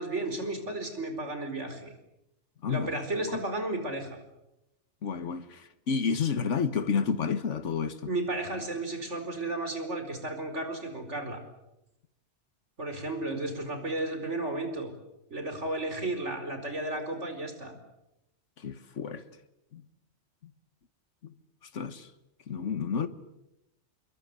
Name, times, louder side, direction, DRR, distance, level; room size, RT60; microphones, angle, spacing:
voice 1, 0.0-2.0 2.7-4.2 8.0-11.4 12.8-14.9 15.3-17.8, right 2 dB, 75° right, 5.1 m, -33 dB
voice 2, 5.0-8.1 18.6-19.2 19.7-19.8 20.4-20.5 21.2-21.3 21.7-22.1 22.5-23.1, left 6 dB, 90° left, 1.6 m, -30 dB
26.5 x 23.0 x 8.3 m
omnidirectional pair, 1.2 m